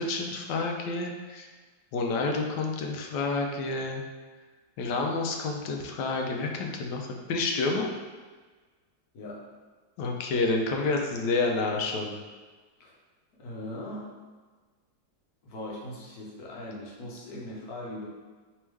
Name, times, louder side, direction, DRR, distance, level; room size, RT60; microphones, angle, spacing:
voice 1, 0.0-1.5 1.9-4.0 4.8-7.9 10.0-12.2, left 3 dB, 85° left, 2 dB, 1.2 m, -29 dB
voice 2, 13.4-14.1 15.4-18.1, left 1 dB, 70° left, -4 dB, 1.4 m, -40 dB
3.4 x 3.4 x 3.1 m, 1.4 s
omnidirectional pair, 1.8 m